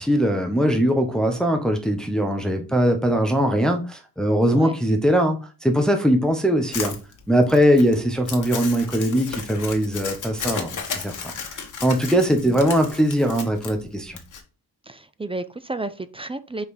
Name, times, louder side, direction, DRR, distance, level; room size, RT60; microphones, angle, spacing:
voice 1, 0.0-6.9 7.3-14.2, equal, ahead, 4 dB, 0.7 m, -21 dB
Crumpling crinkling, 6.7-14.4, left 6 dB, 50° left, 1.4 m, -34 dB
voice 2, 14.9-16.6, right 2 dB, 15° right, 13 dB, 0.3 m, -32 dB
5.2 x 4.3 x 4.7 m, 0.34 s
wide cardioid pair, 150°, 39 cm